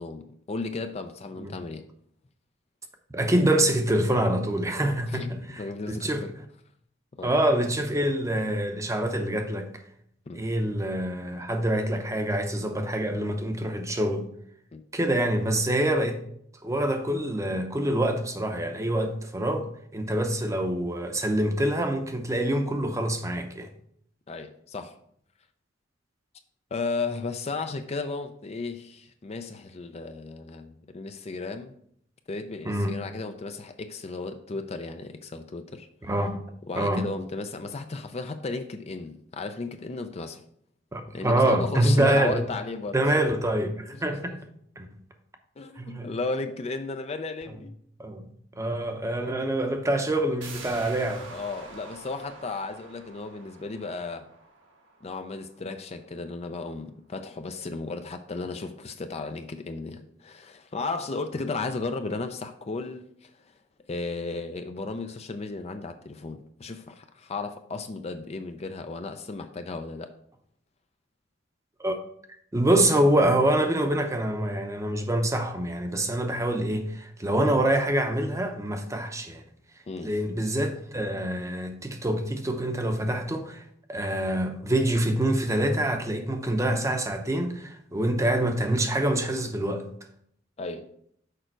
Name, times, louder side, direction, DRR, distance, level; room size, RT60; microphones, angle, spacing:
voice 1, 0.0-1.8 5.1-6.3 7.2-7.4 10.3-10.5 14.7-14.8 24.3-24.9 26.7-31.7 32.3-35.9 36.7-40.4 41.1-43.2 43.9-44.4 45.6-47.7 49.1-49.4 51.3-54.3 55.0-63.3 63.9-70.1 79.9-80.2 90.6-90.9, left 3 dB, 35° left, 0.4 m, -34 dB
voice 2, 3.1-6.3 7.2-9.7 10.3-14.3 14.9-16.2 16.6-19.7 19.9-23.7 32.6-33.0 36.0-36.4 36.7-37.1 40.9-42.4 42.9-44.4 44.8-44.9 45.8-46.1 48.0-48.3 48.6-51.3 71.8-71.9 72.5-79.4 80.0-83.6 83.9-89.9, right 1 dB, 15° right, 0.7 m, -26 dB
sound 1, 50.4-55.9 56.2-56.3, right 3 dB, 80° right, 1.5 m, -46 dB
6.6 x 5.0 x 4.5 m
head